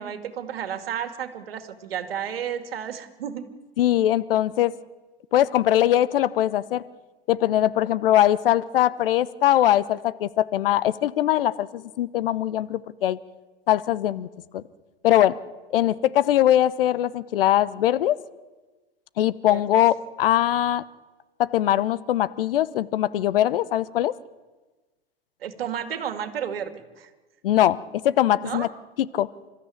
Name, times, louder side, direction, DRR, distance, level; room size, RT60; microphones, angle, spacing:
voice 1, 0.0-3.5 19.5-19.6 25.4-27.1 28.4-28.7, right 9 dB, 70° right, 9 dB, 2.3 m, -32 dB
voice 2, 3.8-4.7 5.3-6.8 7.3-13.2 13.7-14.3 14.5-14.6 15.0-15.4 15.7-18.2 19.2-20.8 21.4-24.1 27.4-27.8 28.0-28.7 29.0-29.3, left 12 dB, 65° left, 17 dB, 0.9 m, -21 dB
29.5 x 13.5 x 8.7 m, 1.3 s
figure-of-eight pair, 95°, 31 cm